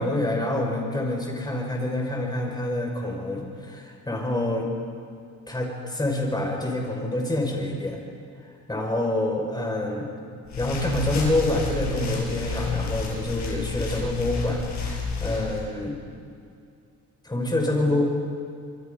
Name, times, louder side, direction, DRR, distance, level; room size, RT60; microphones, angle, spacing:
voice 1, 0.0-4.7 5.5-8.0 8.7-10.1 10.6-14.6 14.9-16.0 17.2-18.0, left 1 dB, 15° left, 1 dB, 5.7 m, -27 dB
sound 1, 10.4-15.6, left 4 dB, 65° left, 6.3 m, -30 dB
26.0 x 24.0 x 5.5 m, 2.4 s
cardioid pair, 90°, 30 cm